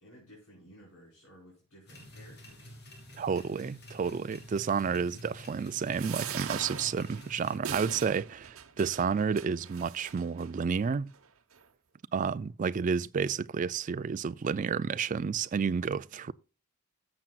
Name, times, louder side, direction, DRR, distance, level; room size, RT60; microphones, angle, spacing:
voice 1, 0.0-2.7, equal, 80° left, 4.8 m, -55 dB
sound 1, 1.9-7.6, equal, 50° left, 3.1 m, -49 dB
voice 2, 3.2-11.1 12.1-16.3, right 6 dB, 35° right, 0.3 m, -31 dB
sound 2, 5.9-10.5 11.1-11.2 11.5-11.6, right 8 dB, 75° right, 1.0 m, -41 dB
13.5 x 7.5 x 2.4 m
head